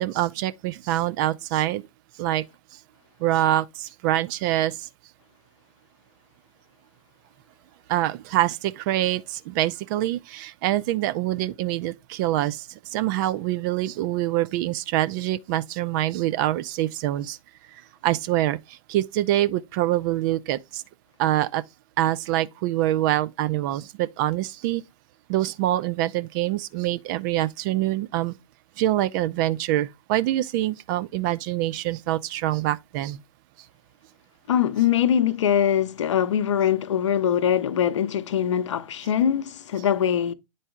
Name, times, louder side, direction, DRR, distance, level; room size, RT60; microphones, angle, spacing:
voice 1, 0.0-1.9 2.2-2.5 2.7-2.8 3.2-4.9 7.9-17.4 18.0-20.8 21.2-21.6 22.0-24.8 25.3-28.4 28.8-33.2, right 14 dB, 35° right, 0.4 m, -25 dB
voice 2, 34.5-40.3, left 9 dB, 60° left, 0.7 m, -22 dB
9.1 x 4.0 x 3.6 m
figure-of-eight pair, 110°, 17 cm